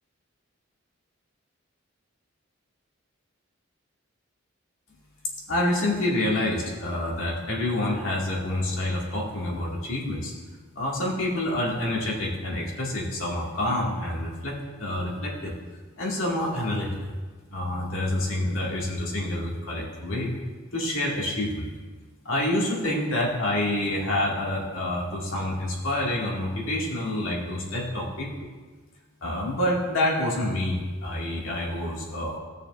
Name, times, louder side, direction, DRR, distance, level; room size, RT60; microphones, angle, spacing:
voice 1, 5.5-10.3 10.8-15.5 16.0-17.0 17.5-20.4 20.7-21.7 22.2-28.3 29.2-32.4, left 1 dB, 70° left, -3 dB, 2.1 m, -27 dB
16.0 x 6.6 x 2.5 m, 1.4 s
head